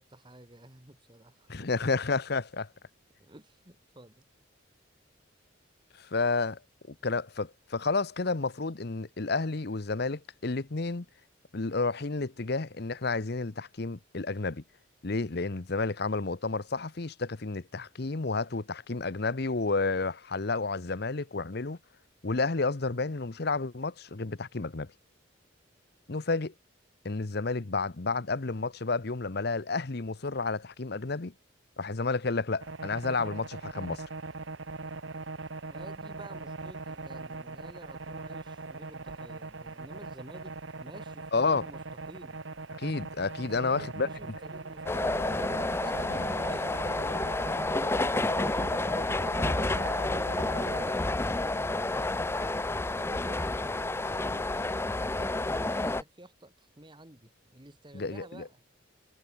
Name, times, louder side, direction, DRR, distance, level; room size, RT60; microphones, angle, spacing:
voice 1, 0.0-1.7 3.2-4.3 35.7-42.4 43.4-45.5 45.8-49.0 49.4-58.6, right 1 dB, 25° right, 2.0 m, -51 dB
voice 2, 1.5-2.7 5.9-6.6 7.0-11.0 11.5-14.6 15.0-21.8 22.2-24.9 26.1-26.5 27.0-31.3 31.8-34.0 41.3-41.6 42.8-44.1 46.1-46.3 57.9-58.5, left 3 dB, 55° left, 0.9 m, -31 dB
sound 1, 32.6-50.9, right 3 dB, 70° right, 1.3 m, -41 dB
sound 2, 44.9-56.0, left 2 dB, 10° left, 0.4 m, -30 dB
head